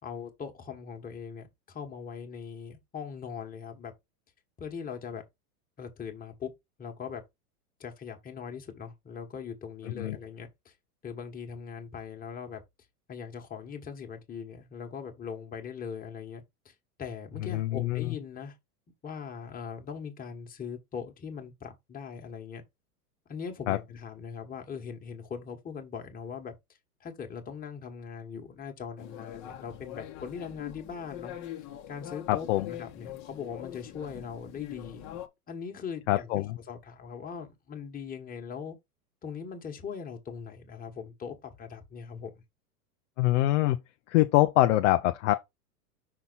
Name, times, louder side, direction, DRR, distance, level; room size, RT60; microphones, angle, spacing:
voice 1, 0.0-3.9 4.6-5.2 5.8-6.5 6.8-7.2 7.8-10.7 11.0-12.6 13.1-18.5 19.0-22.6 23.3-31.3 31.9-35.0 35.5-38.8 39.2-42.4, left 6 dB, 20° left, 1.5 m, -40 dB
voice 2, 9.8-10.2 17.5-18.1 23.7-23.8 32.3-32.7 36.1-36.6 43.2-43.8 44.1-45.3, left 15 dB, 55° left, 0.6 m, -24 dB
sound 1, 29.0-35.3, left 11 dB, 35° left, 1.1 m, -43 dB
5.9 x 4.0 x 4.0 m
hypercardioid pair, 110°, 46 cm